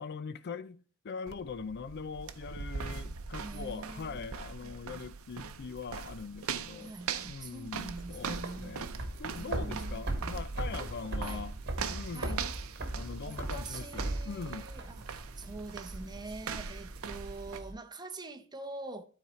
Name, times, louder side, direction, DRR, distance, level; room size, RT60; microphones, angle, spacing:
voice 1, 0.0-6.9 7.2-8.9 9.2-11.5 11.9-12.4 12.9-14.7, left 5 dB, 50° left, 0.4 m, -42 dB
sound 1, 1.3-17.6, right 6 dB, 75° right, 0.6 m, -41 dB
voice 2, 3.4-4.3 4.6-4.7 6.8-8.8 9.3-10.0 11.2-11.5 12.1-12.4 13.2-19.0, right 2 dB, 20° right, 0.7 m, -45 dB
sound 2, 7.8-17.7, right 1 dB, 55° right, 1.2 m, -39 dB
12.0 x 4.1 x 3.1 m
head